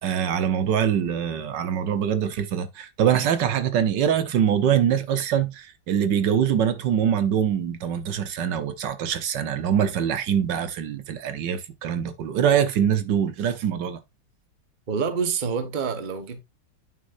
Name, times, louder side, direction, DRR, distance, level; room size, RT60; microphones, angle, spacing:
voice 1, 0.0-14.0, right 8 dB, 80° right, 1.5 m, -24 dB
voice 2, 14.9-16.4, right 6 dB, 30° right, 1.1 m, -27 dB
9.5 x 6.4 x 2.5 m
omnidirectional pair, 1.9 m